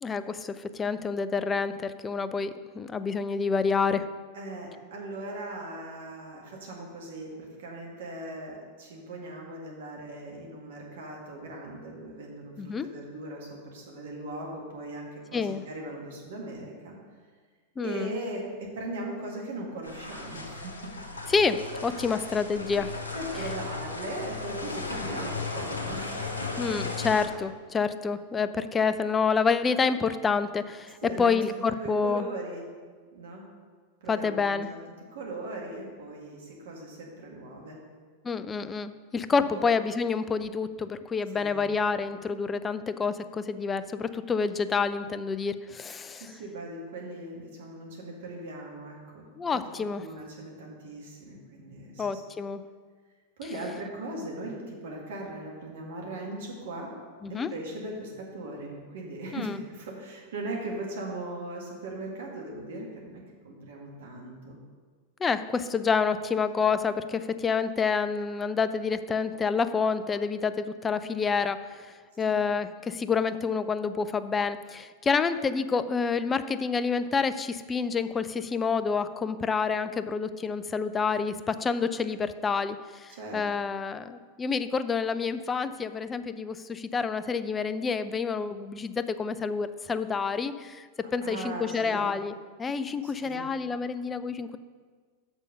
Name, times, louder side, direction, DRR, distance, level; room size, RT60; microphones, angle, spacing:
voice 1, 0.0-4.1 12.6-12.9 15.3-15.6 17.8-18.1 21.3-22.9 26.6-32.3 34.1-34.7 38.2-46.3 49.4-50.0 52.0-52.6 57.2-57.5 59.3-59.6 65.2-90.9 91.1-92.3 92.6-94.6, left 5 dB, 20° left, 12 dB, 0.4 m, -28 dB
voice 2, 4.3-17.0 17.8-20.7 21.9-22.2 23.1-26.4 31.0-31.4 31.8-32.7 33.1-33.5 34.0-34.8 35.1-37.8 39.4-39.7 41.3-41.7 46.1-49.3 49.5-52.2 53.4-56.9 57.3-64.6 72.3-72.4 83.1-83.5 91.2-92.2 93.0-93.5, right 2 dB, 60° right, -1 dB, 1.9 m, -39 dB
sound 1, 19.8-27.3, left 3 dB, 75° left, 1.1 m, -36 dB
6.7 x 6.2 x 6.4 m, 1.5 s
figure-of-eight pair, 90°, 0 cm